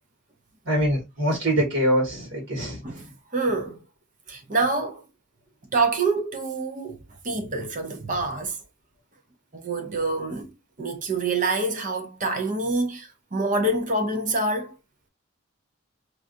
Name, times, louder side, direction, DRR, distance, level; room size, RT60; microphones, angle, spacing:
voice 1, 0.6-2.8, equal, 55° right, 1.7 m, -24 dB
voice 2, 2.8-3.8 4.3-5.0 5.7-7.0 7.2-8.6 9.5-10.5 10.8-14.7, right 2 dB, 35° right, 0.6 m, -26 dB
4.6 x 2.5 x 2.5 m
head